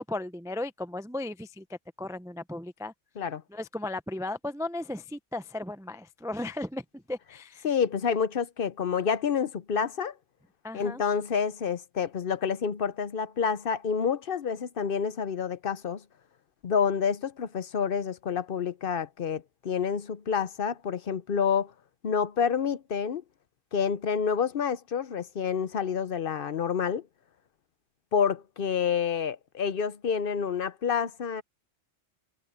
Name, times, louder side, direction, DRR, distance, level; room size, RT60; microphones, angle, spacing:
voice 1, 0.0-1.6 2.0-2.9 3.5-7.6 10.6-11.0, left 2 dB, 5° right, 0.4 m, -35 dB
voice 2, 7.6-10.2 10.7-16.0 16.6-21.7 22.0-23.2 23.7-27.1 28.1-31.4, left 6 dB, 55° left, 0.9 m, -28 dB
omnidirectional pair, 1.2 m